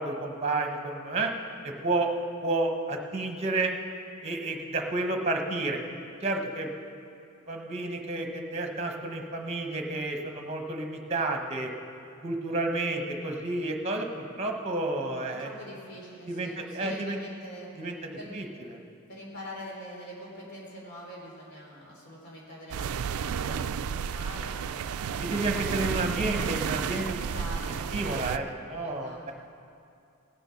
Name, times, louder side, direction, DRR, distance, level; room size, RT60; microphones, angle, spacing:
voice 1, 0.0-1.3 1.6-2.1 2.4-3.7 4.2-5.8 6.2-6.7 7.5-11.7 12.2-15.5 16.3-17.2 17.8-18.8 25.2-27.2 27.9-29.3, right 2 dB, 30° right, 3 dB, 1.1 m, -31 dB
voice 2, 15.4-18.3 19.1-25.3 25.8-26.2 27.2-27.9 28.8-29.3, equal, 55° left, -4 dB, 3.4 m, -44 dB
sound 1, 22.7-28.4, right 7 dB, 85° right, 0.4 m, -32 dB
17.5 x 6.8 x 5.8 m, 2.5 s
head